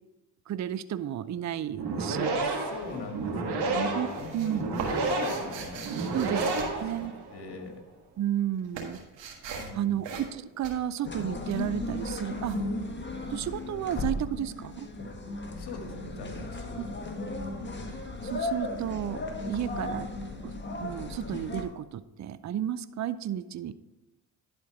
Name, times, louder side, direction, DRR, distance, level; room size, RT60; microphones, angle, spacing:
voice 1, 0.5-2.3 3.7-4.1 4.3-4.6 6.1-6.4 6.8-7.1 8.2-9.0 9.8-12.6 13.3-14.9 18.2-20.1 20.4-20.5 20.8-23.7, right 10 dB, 40° right, 15 dB, 0.5 m, -32 dB
sound 1, 1.7-7.4, right 3 dB, 60° right, 1.9 m, -31 dB
voice 2, 2.1-6.5 6.9-7.8 9.5-10.1 15.6-16.8 17.2-17.5, left 3 dB, 60° left, 3 dB, 1.9 m, -41 dB
sound 2, 2.8-3.3 3.6-7.7 8.0-13.5, right 5 dB, 75° right, 1.7 m, -42 dB
sound 3, 11.0-21.6, left 2 dB, 25° left, 1.5 m, -35 dB
11.0 x 4.5 x 4.9 m, 1.0 s
supercardioid pair, 60°, 45 cm